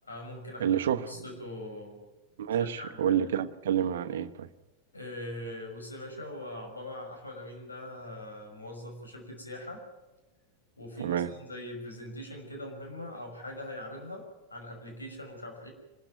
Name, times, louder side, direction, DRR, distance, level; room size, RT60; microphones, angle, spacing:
voice 1, 0.0-0.7 1.1-2.0 2.6-3.2 4.9-9.8 10.8-15.7, left 1 dB, 80° left, 5.9 m, -42 dB
voice 2, 0.6-1.1 2.4-4.5 11.0-11.3, right 9 dB, 60° right, 1.0 m, -28 dB
25.5 x 13.0 x 9.3 m
figure-of-eight pair, 90°, 0 cm